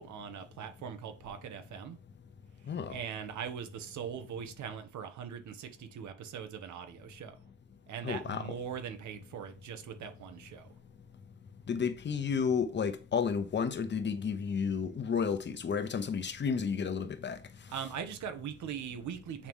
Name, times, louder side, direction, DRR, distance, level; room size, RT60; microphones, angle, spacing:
voice 1, 0.0-2.0 2.9-7.4 7.9-10.7 17.7-19.5, right 8 dB, 70° right, 1.2 m, -41 dB
voice 2, 8.0-8.5 11.7-17.4, left 6 dB, 35° left, 0.9 m, -32 dB
8.5 x 3.0 x 3.6 m
cardioid pair, 90°, 30 cm